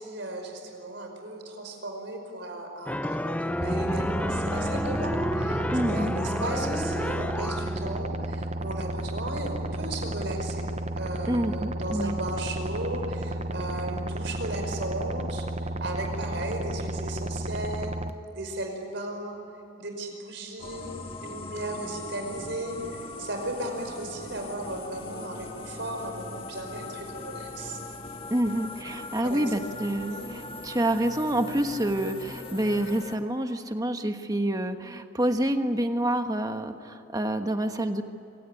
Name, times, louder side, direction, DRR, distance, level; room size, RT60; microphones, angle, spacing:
voice 1, 0.0-10.7 10.9-18.0 18.3-19.4 19.8-20.9 21.2-27.8 29.2-29.4 30.1-30.3, right 1 dB, 60° right, 3 dB, 5.2 m, -36 dB
sound 1, 2.9-8.0, equal, 5° left, 0.5 m, -30 dB
sound 2, 3.6-18.1, right 1 dB, 35° right, 0.8 m, -33 dB
voice 2, 5.7-6.1 11.3-12.2 28.3-38.0, right 1 dB, 20° right, 7 dB, 1.3 m, -27 dB
sound 3, 20.6-33.2, left 2 dB, 25° left, 1.7 m, -40 dB
26.5 x 17.0 x 9.7 m, 2.9 s
head